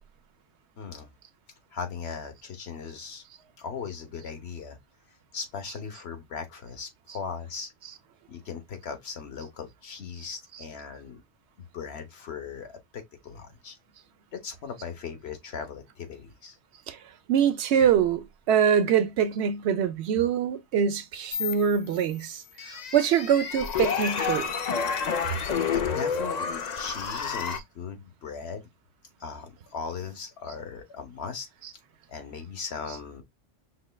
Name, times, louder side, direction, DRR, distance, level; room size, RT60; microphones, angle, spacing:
voice 1, 0.8-1.1 1.7-3.2 3.6-4.8 5.3-7.7 8.3-11.2 11.7-13.8 14.3-16.6 25.1-28.7 29.2-31.5 32.1-33.2, left 6 dB, 65° left, 1.1 m, -38 dB
voice 2, 17.3-24.6, right 8 dB, 75° right, 0.8 m, -24 dB
sound 1, 21.3-22.1 22.6-27.6, left 6 dB, 50° left, 0.5 m, -30 dB
5.8 x 3.2 x 2.2 m
omnidirectional pair, 1.2 m